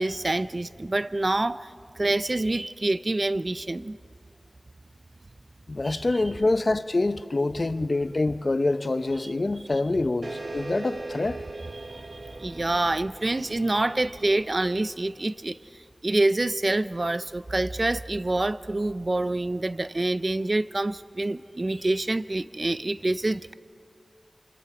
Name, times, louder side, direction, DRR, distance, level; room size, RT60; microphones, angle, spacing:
voice 1, 0.0-4.0 5.8-6.0 9.2-9.3 11.7-15.6 16.0-23.5, right 2 dB, 45° right, 0.5 m, -27 dB
voice 2, 5.7-11.4, left 2 dB, 55° left, 0.8 m, -26 dB
sound 1, 10.2-15.3, right 2 dB, 65° right, 1.1 m, -40 dB
28.0 x 26.5 x 4.9 m
wide cardioid pair, 70°, 0 cm